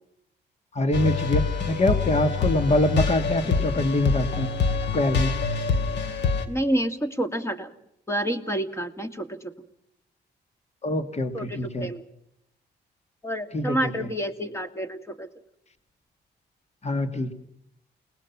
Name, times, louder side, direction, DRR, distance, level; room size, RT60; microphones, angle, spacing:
voice 1, 0.7-4.5 4.9-5.3 10.8-11.9 13.5-13.9 16.8-17.3, left 1 dB, 40° left, 9 dB, 2.3 m, -24 dB
sound 1, 0.9-6.4, left 5 dB, 85° left, 2.5 m, -26 dB
voice 2, 6.5-7.7 8.1-9.5 11.3-12.0 13.2-15.3, right 1 dB, 15° left, 9 dB, 2.5 m, -29 dB
30.0 x 20.0 x 6.0 m, 0.78 s
cardioid pair, 85°, 18 cm